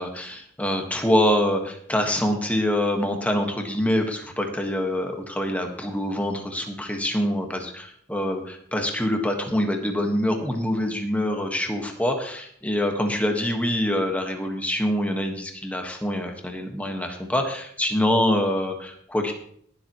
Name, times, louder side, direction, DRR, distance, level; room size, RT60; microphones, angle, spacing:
voice 1, 0.0-19.3, left 1 dB, 5° left, 3 dB, 1.5 m, -25 dB
21.0 x 7.6 x 3.1 m, 0.65 s
head